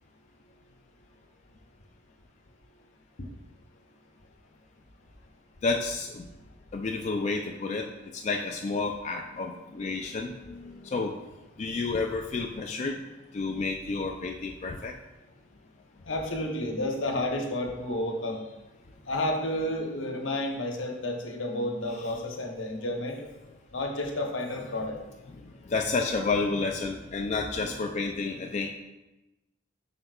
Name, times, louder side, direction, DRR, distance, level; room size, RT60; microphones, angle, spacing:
voice 1, 5.6-6.2 6.7-11.2 11.6-13.0 13.3-14.9 22.1-22.2 25.4-28.7, left 3 dB, 35° left, 2 dB, 0.3 m, -30 dB
voice 2, 16.0-18.4 19.1-23.2 23.7-25.0, left 1 dB, 70° left, 2 dB, 1.0 m, -31 dB
7.8 x 5.7 x 2.3 m, 1.0 s
head